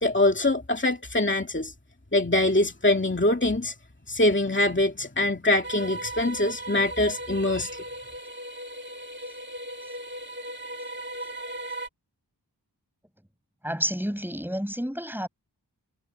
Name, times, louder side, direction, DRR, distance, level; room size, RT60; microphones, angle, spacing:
voice 1, 0.0-1.7 2.1-3.7 4.1-7.8, left 2 dB, 25° left, 2.4 m, -24 dB
sound 1, 5.6-11.9, right 1 dB, 25° right, 2.1 m, -37 dB
voice 2, 13.6-15.3, equal, 5° right, 6.9 m, -30 dB
wide cardioid pair, 50°, 42 cm